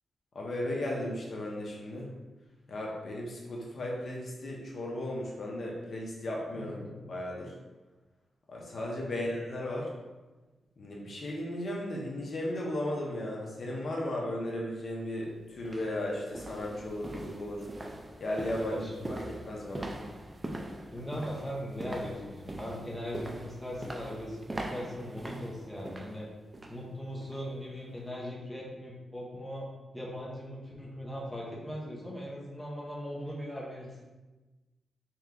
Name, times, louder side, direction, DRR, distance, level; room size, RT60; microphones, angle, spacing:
voice 1, 0.3-2.1 2.7-6.8 7.1-7.5 8.5-9.9 10.8-17.7 18.2-19.9, left 1 dB, 45° left, -2 dB, 0.7 m, -35 dB
voice 2, 6.6-7.1 9.1-9.2 18.6-18.9 20.9-26.3 26.7-29.7 29.9-34.0, equal, ahead, -5 dB, 0.7 m, -39 dB
sound 1, 14.9-15.0 15.6-26.8 27.2-27.5 27.9-28.0, right 1 dB, 20° right, 0.3 m, -42 dB
3.3 x 3.0 x 3.7 m, 1.2 s
wide cardioid pair, 165°, 0 cm